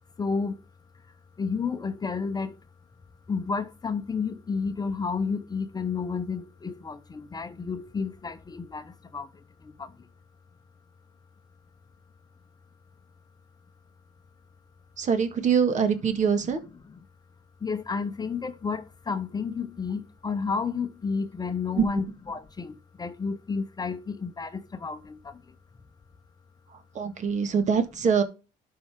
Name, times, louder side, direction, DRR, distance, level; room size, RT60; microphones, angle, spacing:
voice 1, 0.2-0.7 0.9-2.7 3.3-10.1 17.6-25.6, left 5 dB, 25° left, 0.8 m, -31 dB
voice 2, 15.0-16.6 21.8-21.9 26.7-28.2, right 6 dB, 45° right, 1.8 m, -24 dB
12.0 x 5.5 x 3.6 m
cardioid pair, 110°, 17 cm